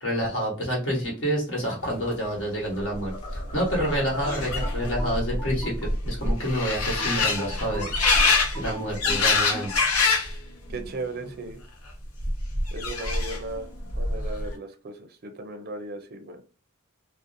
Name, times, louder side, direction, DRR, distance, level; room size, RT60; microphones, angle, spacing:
voice 1, 0.0-7.9 8.6-9.7, equal, 60° left, -3 dB, 1.2 m, -28 dB
sound 1, 2.0-2.4 2.7-4.8, left 1 dB, 25° left, 0.8 m, -41 dB
sound 2, 2.8-2.9 3.1-10.4 10.7-11.3 12.2-13.6 13.9-14.5, left 3 dB, 85° left, 0.6 m, -25 dB
sound 3, 3.9-6.5 7.0-9.7, right 1 dB, 10° left, 1.1 m, -41 dB
voice 2, 10.7-11.6 12.7-13.7 14.0-16.4, right 2 dB, 45° right, 6 dB, 0.4 m, -36 dB
2.5 x 2.0 x 2.6 m, 0.34 s
head